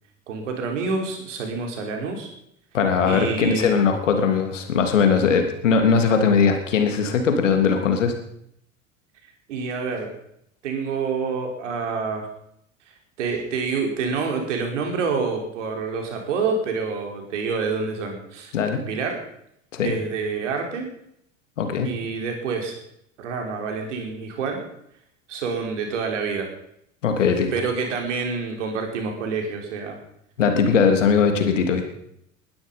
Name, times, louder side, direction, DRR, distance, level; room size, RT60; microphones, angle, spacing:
voice 1, 0.3-2.3 3.0-3.9 9.5-10.1 10.6-12.3 13.2-18.5 18.9-19.2 19.8-20.9 21.8-22.8 23.2-24.6 25.3-26.5 27.5-30.0, right 4 dB, 70° right, 3 dB, 4.7 m, -27 dB
voice 2, 2.7-8.1 18.5-18.8 19.7-19.9 21.6-21.9 27.0-27.5 30.4-31.8, left 6 dB, 75° left, 5 dB, 3.1 m, -20 dB
21.0 x 12.0 x 5.5 m, 0.75 s
figure-of-eight pair, 75°, 38 cm